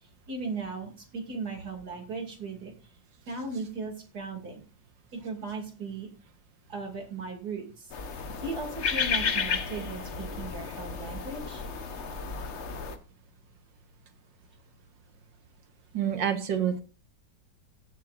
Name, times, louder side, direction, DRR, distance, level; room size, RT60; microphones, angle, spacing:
voice 1, 0.3-2.7 3.3-4.6 5.1-6.1 6.7-7.9 8.4-11.7, right 3 dB, 60° right, 2 dB, 3.1 m, -37 dB
sound 1, 7.9-13.0, left 5 dB, 45° left, 1.2 m, -32 dB
voice 2, 15.9-16.8, right 9 dB, 85° right, 7 dB, 2.0 m, -27 dB
18.0 x 7.5 x 2.5 m, 0.35 s
omnidirectional pair, 1.9 m